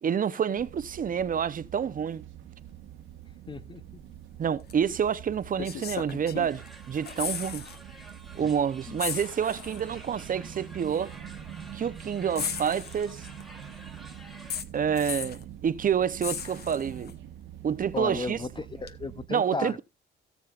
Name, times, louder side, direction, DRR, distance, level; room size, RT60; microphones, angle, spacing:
voice 1, 0.0-2.2 4.4-7.6 8.3-11.1 11.7-13.3 14.7-17.1 17.6-18.4 19.3-19.8, right 8 dB, 45° right, 0.7 m, -28 dB
sound 1, 0.6-19.3, right 10 dB, 90° right, 1.3 m, -45 dB
voice 2, 3.5-3.8 8.4-8.5 8.9-9.0 17.9-19.8, left 3 dB, 25° left, 0.5 m, -35 dB
sound 2, 4.7-4.8 5.6-6.7 6.9-7.8 8.1-8.2 9.0-9.8 10.9-11.0 12.4-13.4 14.5-15.4 16.2-17.1 18.9-19.0, left 7 dB, 55° left, 1.0 m, -36 dB
sound 3, 6.5-14.6, right 1 dB, ahead, 1.7 m, -50 dB
17.5 x 7.3 x 2.4 m
cardioid pair, 90°, 20 cm